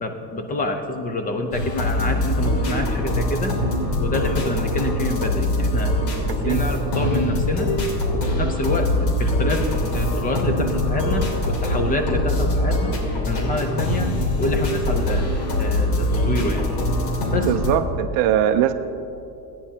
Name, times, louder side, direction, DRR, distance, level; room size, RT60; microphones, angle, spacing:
voice 1, 0.0-3.5 4.0-5.9 6.2-7.7 8.1-12.9 13.3-14.1 14.4-16.7 17.3-17.5, left 2 dB, 20° left, 5 dB, 0.5 m, -27 dB
sound 1, 1.5-17.7, left 1 dB, 60° left, 2.8 m, -23 dB
voice 2, 6.3-6.6 17.4-18.7, right 11 dB, 45° right, 9 dB, 0.4 m, -21 dB
16.5 x 9.9 x 2.8 m, 2.7 s
supercardioid pair, 140°, 48 cm